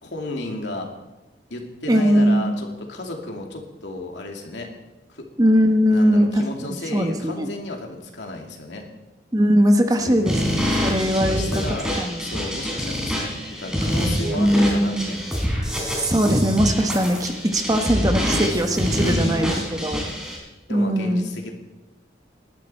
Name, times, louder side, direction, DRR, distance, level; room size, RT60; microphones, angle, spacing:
voice 1, 0.0-0.9 1.5-4.7 5.9-8.8 10.0-10.4 10.8-13.3 13.6-15.3 19.0-19.7 20.7-21.5, left 2 dB, 80° left, 2 dB, 2.6 m, -33 dB
voice 2, 1.9-2.5 5.4-6.4 6.9-7.5 9.3-10.4 10.8-12.3 14.2-15.1 16.0-19.5 19.8-20.0 20.7-21.2, equal, 20° right, 5 dB, 1.1 m, -20 dB
sound 1, 10.3-20.4, equal, 5° right, 3.4 m, -26 dB
19.0 x 12.5 x 4.4 m, 1.1 s
head